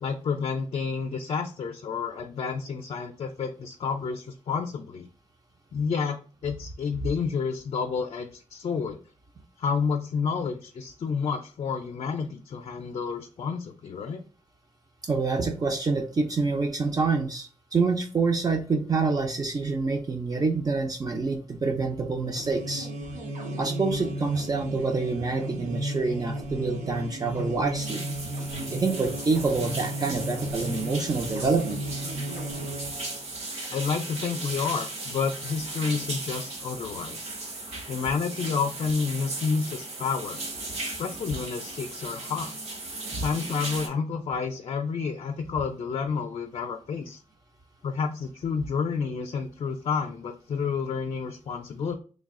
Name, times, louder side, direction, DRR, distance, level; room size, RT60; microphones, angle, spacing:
voice 1, 0.0-5.1 5.7-9.0 9.6-14.2 33.7-37.3 37.9-40.4 40.8-42.6 43.2-47.2 47.8-51.9, left 5 dB, 50° left, 4 dB, 0.4 m, -30 dB
voice 2, 15.0-22.9 23.6-28.0 28.7-31.8 43.1-43.2, right 4 dB, 30° right, 4 dB, 0.4 m, -27 dB
sound 1, 22.2-33.2, right 1 dB, 85° right, 0.8 m, -34 dB
sound 2, 27.8-43.9, right 2 dB, 55° right, 1.0 m, -37 dB
3.2 x 2.3 x 3.6 m, 0.38 s
wide cardioid pair, 125°, 13 cm